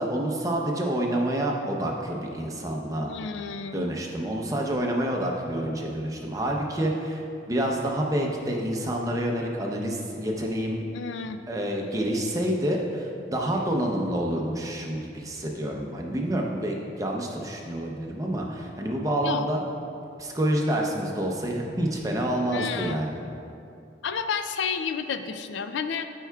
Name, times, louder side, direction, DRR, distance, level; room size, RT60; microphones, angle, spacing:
voice 1, 0.0-3.1 3.7-7.2 7.5-10.8 11.5-19.6 20.2-23.2, right 1 dB, 20° right, 0 dB, 0.6 m, -28 dB
voice 2, 3.1-3.8 10.9-11.4 19.2-19.5 22.5-23.0 24.0-26.1, left 6 dB, 75° left, 9 dB, 0.4 m, -31 dB
13.5 x 4.6 x 2.3 m, 2.6 s
head